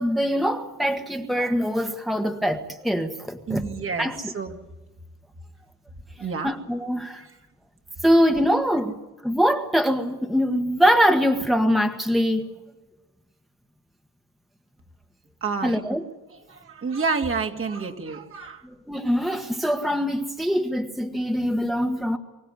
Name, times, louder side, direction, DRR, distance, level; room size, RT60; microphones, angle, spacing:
voice 1, 0.0-3.6 4.0-4.3 6.4-7.2 8.0-9.0 9.2-12.5 15.6-16.0 18.6-22.2, equal, ahead, 1.5 m, -23 dB
voice 2, 3.5-4.6 6.2-6.5 7.1-7.3 15.4-15.8 16.5-18.6, right 5 dB, 45° right, 2.5 m, -29 dB
24.5 x 16.0 x 9.5 m
cardioid pair, 90°, 30 cm